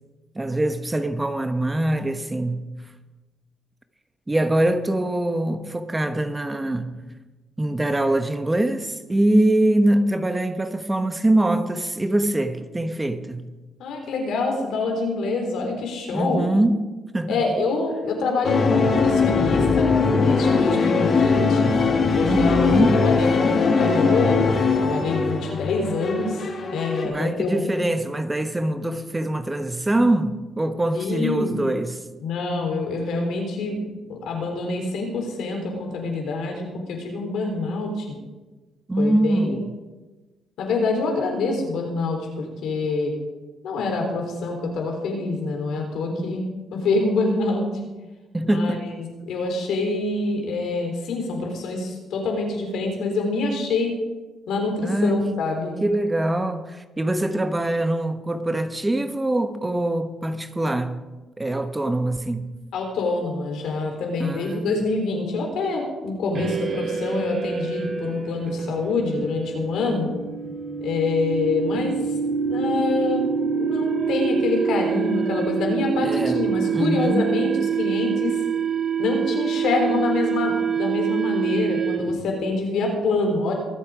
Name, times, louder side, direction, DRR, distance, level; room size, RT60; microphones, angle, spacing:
voice 1, 0.3-2.7 4.3-7.0 7.6-13.5 16.1-17.4 22.2-23.0 27.0-32.0 38.9-39.6 46.1-46.2 48.3-48.8 54.8-55.4 55.8-61.0 61.4-62.5 64.2-64.7 76.0-76.4 76.7-77.4, right 1 dB, 15° right, 1.1 m, -23 dB
voice 2, 13.8-16.5 17.3-21.8 22.1-24.4 24.8-26.4 26.7-27.6 30.9-31.6 32.2-33.8 34.1-38.1 39.0-39.6 40.6-43.1 43.6-46.4 46.7-47.6 48.4-54.0 54.5-55.7 62.7-70.1 70.8-72.0 72.5-73.3 73.5-77.5 77.8-78.4 79.0-83.5, left 3 dB, 75° left, 3.9 m, -26 dB
sound 1, 18.4-27.1, left 4 dB, 50° left, 2.1 m, -20 dB
sound 2, 66.3-82.3, right 6 dB, 50° right, 2.6 m, -26 dB
23.5 x 8.0 x 5.1 m
cardioid pair, 90°, 0 cm